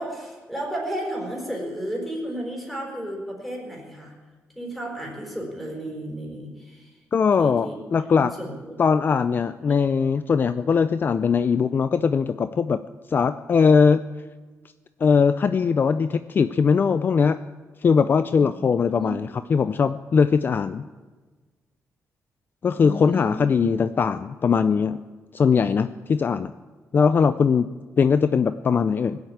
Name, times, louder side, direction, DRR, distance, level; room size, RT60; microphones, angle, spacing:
voice 1, 0.0-4.2 4.5-7.0 7.4-7.8 8.2-8.7 18.4-18.5 18.8-19.1 22.8-23.8, right 1 dB, ahead, -1 dB, 4.5 m, -33 dB
voice 2, 7.1-8.3 8.8-12.8 13.1-14.0 15.0-17.4 17.8-20.8 22.6-25.0 25.3-26.5 26.9-27.7 28.0-29.2, left 5 dB, 40° left, 12 dB, 0.4 m, -20 dB
20.0 x 8.0 x 8.8 m, 1.4 s
wide cardioid pair, 140°, 6 cm